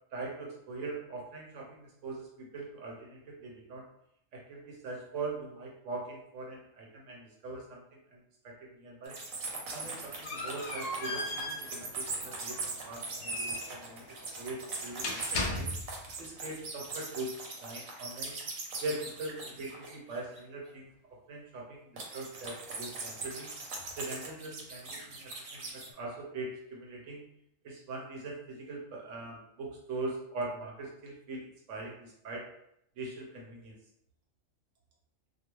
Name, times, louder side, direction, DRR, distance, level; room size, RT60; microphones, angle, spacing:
voice 1, 0.1-3.9 4.3-9.2 9.7-14.1 14.4-15.7 16.2-17.3 17.6-18.4 18.8-20.9 21.3-23.5 24.0-27.2 27.6-32.5 33.0-33.7, right 3 dB, 70° right, -1 dB, 0.9 m, -41 dB
sound 1, 9.1-20.4 22.0-25.9, right 3 dB, 90° right, 1.1 m, -40 dB
sound 2, 9.5-16.1, left 2 dB, 85° left, 0.4 m, -38 dB
2.3 x 2.3 x 2.9 m, 0.77 s
omnidirectional pair, 1.4 m